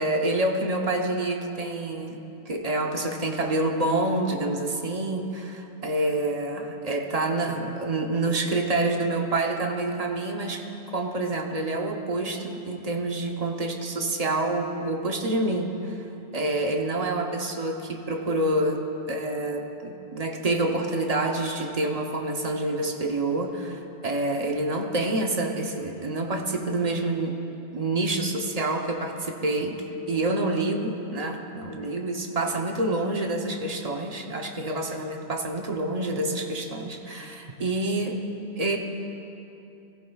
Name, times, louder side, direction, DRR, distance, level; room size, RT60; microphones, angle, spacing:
voice 1, 0.0-2.2 2.5-16.0 16.3-18.8 19.1-27.4 27.7-29.8 30.1-38.2 38.6-38.8, right 2 dB, 40° right, 2 dB, 0.9 m, -27 dB
15.5 x 15.0 x 2.3 m, 2.8 s
omnidirectional pair, 1.0 m